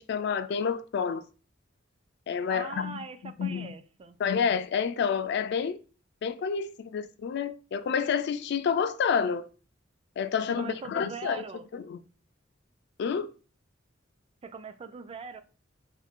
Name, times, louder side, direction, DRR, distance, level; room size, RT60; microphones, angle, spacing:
voice 1, 0.1-1.2 2.3-3.7 4.2-5.8 6.2-9.5 10.2-11.4 11.7-12.0 13.0-13.3, left 6 dB, 60° left, 0.3 m, -29 dB
voice 2, 2.5-4.2 10.5-11.6 14.4-15.4, right 4 dB, 30° right, 0.3 m, -41 dB
2.6 x 2.5 x 4.2 m
head